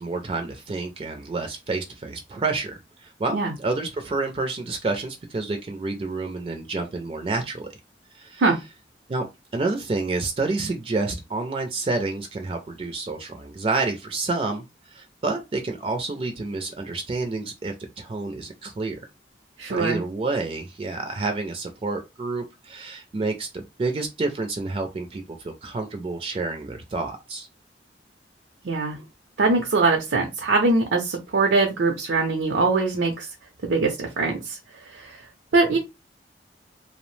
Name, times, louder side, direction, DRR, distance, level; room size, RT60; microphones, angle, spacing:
voice 1, 0.0-7.7 8.1-8.4 9.1-9.3 9.5-19.0 19.7-27.5, right 3 dB, 30° right, 0.3 m, -29 dB
voice 2, 19.6-20.0 28.6-29.0 29.4-33.3 33.6-34.6 35.5-35.8, right 3 dB, 85° right, 0.5 m, -22 dB
2.7 x 2.0 x 3.1 m
head